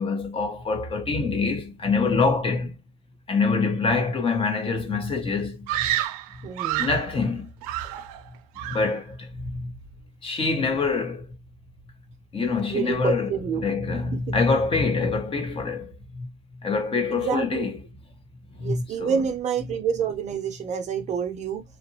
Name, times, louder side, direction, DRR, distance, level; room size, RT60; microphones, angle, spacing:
voice 1, 0.0-2.8 3.3-5.7 6.8-7.5 8.7-9.7 10.2-11.3 12.3-13.3 13.6-16.3 16.6-17.7 18.6-19.2, left 4 dB, 30° left, 1.0 m, -25 dB
Screaming, 5.7-7.1 7.6-8.3 8.6-9.0, right 14 dB, 85° right, 0.5 m, -29 dB
voice 2, 6.4-6.9 12.7-13.7 14.3-14.4 17.1-17.7 18.6-21.6, right 7 dB, 40° right, 0.7 m, -28 dB
2.8 x 2.5 x 2.7 m
supercardioid pair, 105°, 18 cm